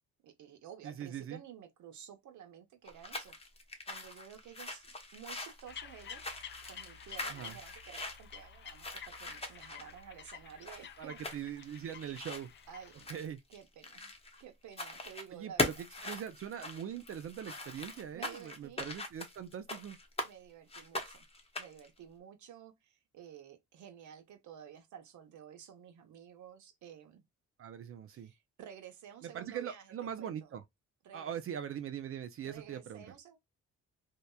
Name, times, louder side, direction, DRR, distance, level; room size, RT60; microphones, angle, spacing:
voice 1, 0.2-3.4 3.9-6.2 6.7-11.5 12.7-13.2 13.5-14.1 14.4-15.8 18.1-18.8 20.2-21.3 21.6-27.3 28.1-30.6 31.0-31.4 32.4-33.4, right 9 dB, 75° right, 0.9 m, -52 dB
voice 2, 0.8-1.4 7.3-7.6 11.0-12.5 13.1-13.4 15.3-20.0 27.6-28.3 29.2-30.6 31.1-33.1, right 9 dB, 50° right, 0.4 m, -42 dB
sound 1, 2.8-14.4 14.7-15.3 15.6-20.3 20.7-21.9, left 2 dB, 20° left, 0.8 m, -41 dB
sound 2, 5.7-13.2, left 8 dB, 40° left, 0.4 m, -51 dB
2.8 x 2.1 x 2.2 m
cardioid pair, 90°, 30 cm